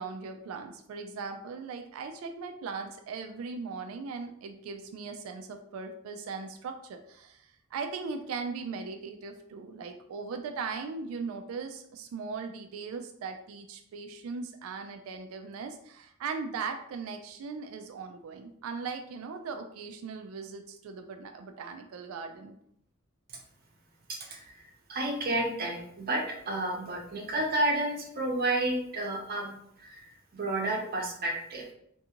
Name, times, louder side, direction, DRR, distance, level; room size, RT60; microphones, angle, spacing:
voice 1, 0.0-22.5, right 4 dB, 80° right, 5 dB, 0.3 m, -39 dB
voice 2, 24.1-24.5 24.9-30.0 30.3-31.6, right 1 dB, 45° right, 1 dB, 0.6 m, -31 dB
2.6 x 2.4 x 2.8 m, 0.70 s
head